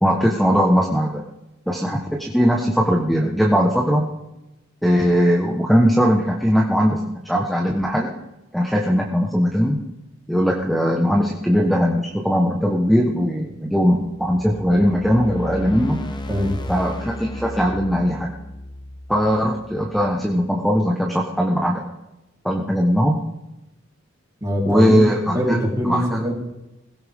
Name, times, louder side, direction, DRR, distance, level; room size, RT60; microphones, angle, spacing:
voice 1, 0.0-1.2 1.7-4.0 4.8-7.0 7.2-8.1 8.5-9.8 10.3-16.0 16.7-18.3 19.1-21.8 22.4-23.2 24.7-25.6 25.8-26.2, equal, ahead, -1 dB, 1.2 m, -19 dB
sound 1, 14.0-20.2, left 1 dB, 20° left, 0.9 m, -34 dB
voice 2, 24.4-26.3, equal, 15° right, -3 dB, 3.8 m, -23 dB
20.5 x 17.0 x 3.7 m, 0.95 s
head